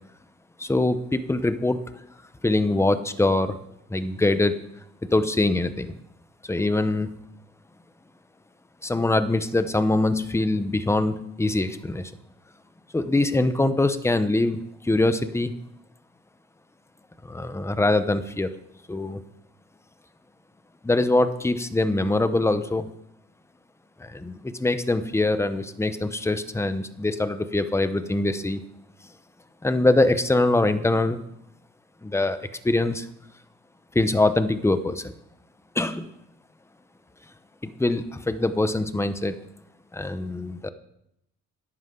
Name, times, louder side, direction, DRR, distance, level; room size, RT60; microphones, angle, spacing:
voice 1, 0.6-1.8 2.4-3.6 3.9-4.5 5.0-5.9 6.4-7.1 8.8-12.1 12.9-15.5 17.2-18.5 18.9-19.2 20.8-22.9 24.0-28.6 29.6-31.2 32.0-33.1 33.9-35.1 35.7-36.1 37.6-39.4 39.9-40.7, left 2 dB, 10° left, 11 dB, 0.9 m, -23 dB
13.5 x 10.5 x 3.9 m, 0.78 s
cardioid pair, 90°, 30 cm